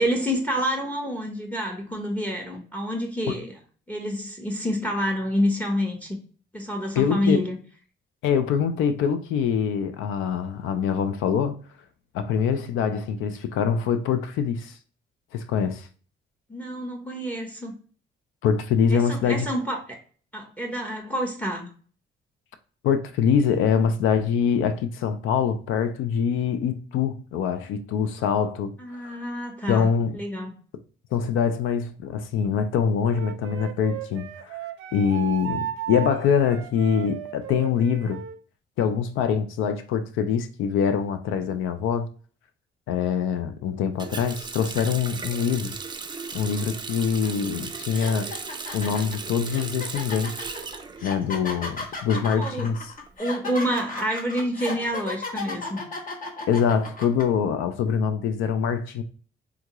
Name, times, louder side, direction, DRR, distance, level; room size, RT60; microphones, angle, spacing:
voice 1, 0.0-3.5 3.9-6.2 6.5-7.6 16.5-17.8 18.9-20.0 20.3-21.7 28.8-29.9 30.1-30.5 52.3-52.7 53.2-55.8, equal, 5° left, 0.8 m, -28 dB
voice 2, 7.0-7.4 8.2-11.6 12.1-14.8 15.3-15.9 18.4-19.5 22.8-29.2 29.7-30.2 31.1-34.6 34.9-38.2 38.8-42.1 42.9-45.7 46.3-48.3 48.7-50.5 51.0-52.9 56.5-59.0, left 7 dB, 90° left, 0.4 m, -24 dB
Wind instrument woodwind instrument, 33.1-38.4, right 11 dB, 90° right, 0.4 m, -35 dB
Water tap faucet, 44.0-51.7 52.0-53.1, right 4 dB, 20° right, 0.5 m, -36 dB
sound 1, 47.2-47.4 47.9-57.2, left 3 dB, 45° left, 1.1 m, -35 dB
3.6 x 2.2 x 2.9 m
cardioid pair, 90°, 20 cm